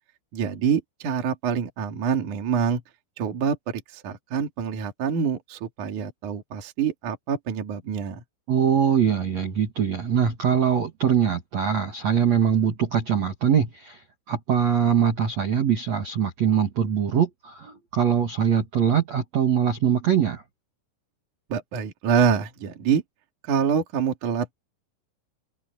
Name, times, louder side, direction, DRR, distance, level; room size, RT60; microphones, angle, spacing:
voice 1, 0.3-2.8 3.2-3.6 3.9-8.2 21.5-23.0 23.5-24.5, right 7 dB, 45° right, 3.5 m, -26 dB
voice 2, 8.5-14.0 14.3-20.4, right 8 dB, 80° right, 1.5 m, -22 dB
omnidirectional pair, 5.9 m